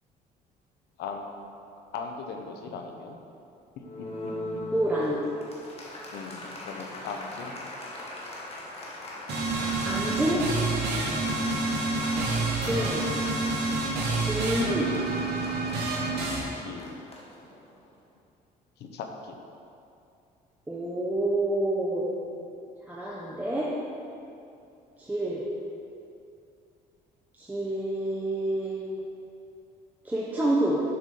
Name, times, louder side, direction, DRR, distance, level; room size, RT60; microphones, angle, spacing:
voice 1, 1.0-1.5 1.9-3.2 3.8-4.1 6.1-7.6 11.4-11.7 16.5-17.0 18.8-19.4 22.3-22.6, left 5 dB, 75° left, 4 dB, 0.9 m, -39 dB
Applause, 3.8-17.9, left 1 dB, 35° left, 1.4 m, -40 dB
voice 2, 4.7-5.3 9.5-10.4 12.6-13.1 14.2-14.9 20.7-22.1 22.9-23.7 25.0-25.4 27.3-28.9 30.0-30.8, right 1 dB, 10° right, -6 dB, 0.9 m, -28 dB
sound 1, 9.3-16.4, right 3 dB, 80° right, 1.4 m, -28 dB
7.1 x 5.0 x 5.5 m, 2.6 s
cardioid pair, 110°, 17 cm